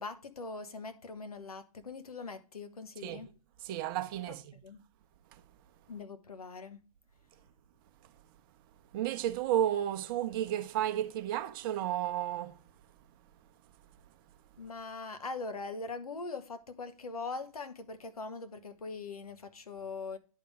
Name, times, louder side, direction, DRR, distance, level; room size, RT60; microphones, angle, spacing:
voice 1, 0.0-3.3 4.3-4.4 4.6-4.8 5.9-6.8 14.6-20.2, left 3 dB, 80° left, 1.0 m, -41 dB
voice 2, 3.6-4.5 8.9-12.6, right 12 dB, 35° right, 0.7 m, -32 dB
10.5 x 3.7 x 4.9 m
figure-of-eight pair, 120°, 19 cm